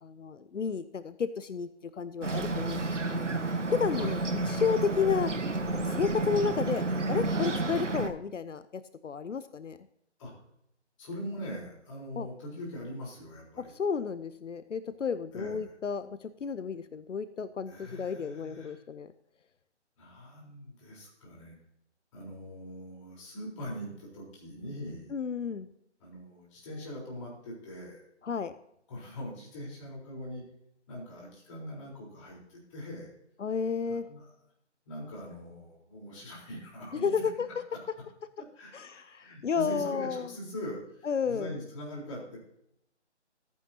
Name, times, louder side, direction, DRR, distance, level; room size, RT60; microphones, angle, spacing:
voice 1, 0.0-3.3 3.7-5.3 5.7-9.8 12.2-12.3 13.6-19.1 25.1-25.7 28.2-28.5 33.4-34.1 36.9-37.5 38.7-40.3 41.0-41.5, left 6 dB, 85° left, 13 dB, 0.7 m, -32 dB
Bird, 2.2-8.1, right 2 dB, 85° right, 1.4 m, -31 dB
voice 2, 11.0-13.7 15.3-15.6 17.7-18.8 20.0-21.6 22.1-25.1 26.0-28.0 28.9-30.4 30.9-33.1 33.9-34.3 34.9-37.3 37.7-37.8 38.5-42.4, equal, 25° left, -3 dB, 4.0 m, -42 dB
14.0 x 9.4 x 2.8 m, 0.75 s
figure-of-eight pair, 155°, 35 cm